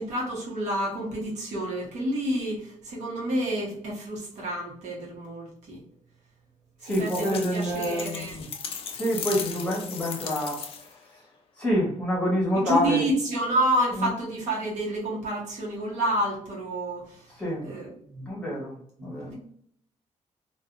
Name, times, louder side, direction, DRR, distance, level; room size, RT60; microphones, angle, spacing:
voice 1, 0.0-5.8 6.8-8.3 12.7-17.2 17.6-18.3 19.0-19.3, right 1 dB, 75° right, -3 dB, 1.1 m, -29 dB
sound 1, 6.8-11.0, left 6 dB, 50° left, 0.4 m, -37 dB
voice 2, 6.8-8.5 8.9-11.3 11.6-13.0 13.9-14.1 17.3-17.7 18.3-19.3, equal, 10° left, -6 dB, 1.1 m, -28 dB
2.6 x 2.4 x 2.4 m, 0.66 s
cardioid pair, 180°, 12 cm